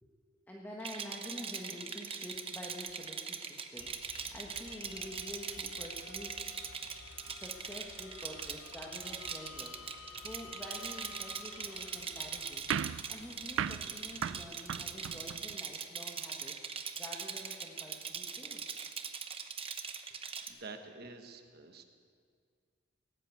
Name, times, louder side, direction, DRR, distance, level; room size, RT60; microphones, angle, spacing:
voice 1, 0.5-6.7 7.3-18.7, left 1 dB, 10° left, -3 dB, 1.4 m, -48 dB
Rattle, 0.8-20.5, right 6 dB, 30° right, 0.9 m, -41 dB
sound 1, 3.8-15.4, left 5 dB, 75° left, 0.8 m, -53 dB
sound 2, 12.7-15.6, right 8 dB, 75° right, 0.4 m, -37 dB
voice 2, 20.5-21.8, right 3 dB, 55° right, 6 dB, 1.2 m, -48 dB
18.0 x 8.9 x 8.3 m, 2.1 s
head